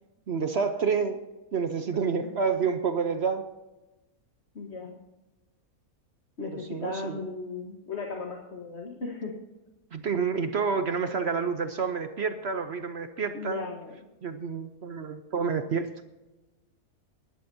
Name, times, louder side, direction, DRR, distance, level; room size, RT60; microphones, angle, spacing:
voice 1, 0.3-1.2 1.5-3.5 6.4-7.3 9.9-13.7 14.2-15.9, right 5 dB, 55° right, 8 dB, 0.9 m, -29 dB
voice 2, 1.9-2.3 4.5-5.0 6.4-9.3 13.3-14.0, left 4 dB, 50° left, 1 dB, 1.5 m, -37 dB
20.5 x 11.5 x 2.7 m, 1.0 s
omnidirectional pair, 1.5 m